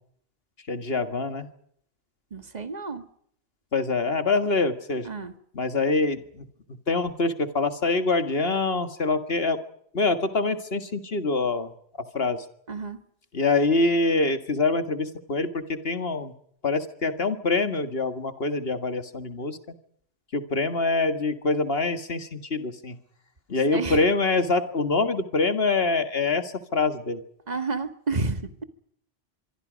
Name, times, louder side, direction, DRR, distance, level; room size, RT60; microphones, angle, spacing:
voice 1, 0.7-1.5 3.7-5.1 5.6-6.5 6.9-9.6 9.9-11.7 12.1-12.5 13.3-16.3 16.6-19.6 20.3-23.0 23.5-27.2, left 3 dB, 55° left, 9 dB, 2.0 m, -25 dB
voice 2, 2.3-3.1 5.0-5.3 12.7-13.0 23.7-24.0 27.5-28.6, right 3 dB, 35° right, 9 dB, 1.8 m, -30 dB
25.5 x 23.5 x 5.2 m, 0.67 s
omnidirectional pair, 1.2 m